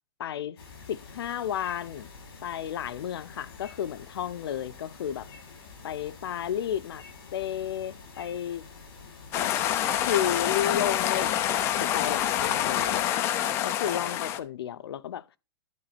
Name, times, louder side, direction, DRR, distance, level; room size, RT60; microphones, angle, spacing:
voice 1, 0.2-0.6 0.9-2.1 2.4-5.3 5.8-7.0 7.3-8.6 9.3-9.5 10.0-13.0 13.6-15.2, left 10 dB, 80° left, 0.7 m, -32 dB
sound 1, 0.6-13.0, left 4 dB, 60° left, 5.1 m, -48 dB
sound 2, 9.3-14.4, left 11 dB, 20° left, 0.5 m, -27 dB
11.0 x 4.1 x 4.1 m
supercardioid pair, 170°, 13 cm